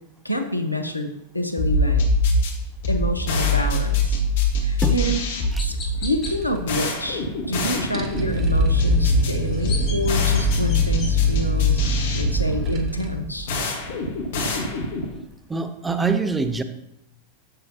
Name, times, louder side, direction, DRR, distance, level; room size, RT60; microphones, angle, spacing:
voice 1, 0.2-2.0 2.9-4.2 4.6-5.2 5.6-13.5, left 1 dB, 85° left, 6 dB, 1.0 m, -28 dB
sound 1, 1.6-15.2, left 2 dB, 55° left, 1.6 m, -23 dB
Chirp tweet, 4.7-4.8 5.6-6.3 9.3-11.1, left 3 dB, 35° left, 2.9 m, -36 dB
voice 2, 4.8-5.2 5.5-5.7 6.0-6.1 15.5-16.6, right 4 dB, 10° right, 9 dB, 0.8 m, -25 dB
sound 2, 6.2-7.2 7.5-7.6 7.8-13.1, right 2 dB, 30° right, 1.2 m, -28 dB
11.5 x 7.7 x 2.9 m, 0.83 s
figure-of-eight pair, 90°, 0 cm